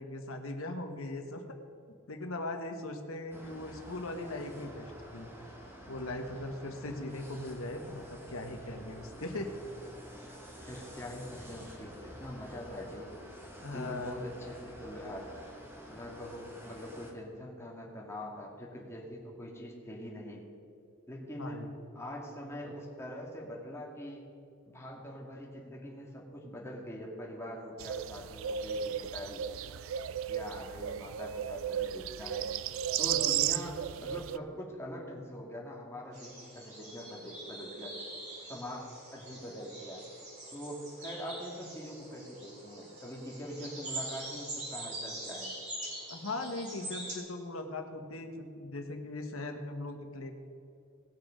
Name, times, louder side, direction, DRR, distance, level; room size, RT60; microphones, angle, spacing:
voice 1, 0.0-1.5 2.1-5.3 5.9-9.5 13.6-14.2 21.4-21.7 46.1-50.3, left 2 dB, 75° left, 5 dB, 1.4 m, -39 dB
sound 1, 3.3-17.1, equal, 10° right, 1.8 m, -49 dB
voice 2, 10.6-13.1 13.7-15.4 15.9-20.4 21.1-21.6 21.9-24.2 24.7-29.4 30.3-32.5 33.0-38.1 38.4-38.8 39.1-40.0 40.5-45.5, equal, 15° left, -3 dB, 2.3 m, -43 dB
sound 2, 27.8-34.4, right 9 dB, 65° right, 0.4 m, -34 dB
sound 3, 36.1-47.2, right 1 dB, 35° right, 3.4 m, -44 dB
19.0 x 6.4 x 5.1 m, 2.6 s
head